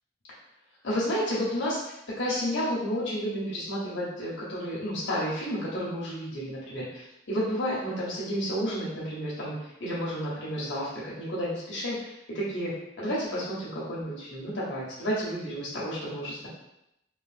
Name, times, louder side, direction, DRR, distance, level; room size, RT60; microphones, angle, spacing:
voice 1, 0.8-1.8 2.2-9.5 9.8-12.0 12.3-16.5, equal, 80° left, -6 dB, 0.9 m, -31 dB
3.2 x 2.5 x 2.5 m, 0.83 s
head